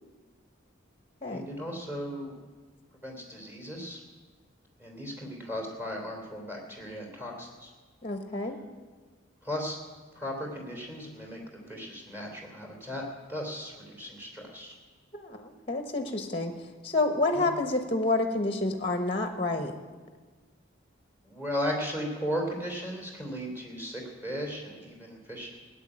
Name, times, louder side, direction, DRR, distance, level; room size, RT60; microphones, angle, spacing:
voice 1, 1.2-2.4 3.0-4.0 4.8-7.7 9.4-9.8 10.1-11.4 11.7-13.0 13.3-14.7 17.3-17.5 21.2-25.6, equal, 10° right, 0 dB, 3.0 m, -36 dB
voice 2, 8.0-8.6 15.1-16.5 16.8-19.7, left 2 dB, 25° left, 6 dB, 1.0 m, -29 dB
16.0 x 8.0 x 9.9 m, 1.4 s
head